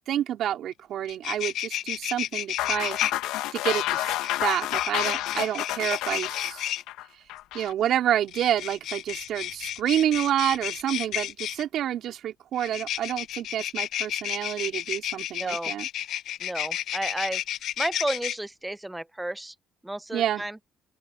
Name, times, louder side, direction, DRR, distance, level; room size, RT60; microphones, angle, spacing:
voice 1, 0.0-3.0 3.5-4.1 4.4-6.7 7.5-15.9 20.1-20.4, right 11 dB, 65° right, 3.3 m, -28 dB
sound 1, 0.7-0.8 1.0-3.1 4.2-6.8 8.2-11.6 12.6-18.3, left 11 dB, 70° left, 0.9 m, -32 dB
sound 2, 2.6-7.7, left 15 dB, 85° left, 1.7 m, -30 dB
voice 2, 15.4-15.7 16.4-17.4 17.8-19.5 19.8-20.6, right 1 dB, 10° right, 0.6 m, -32 dB
open air
supercardioid pair, 85°, 0 cm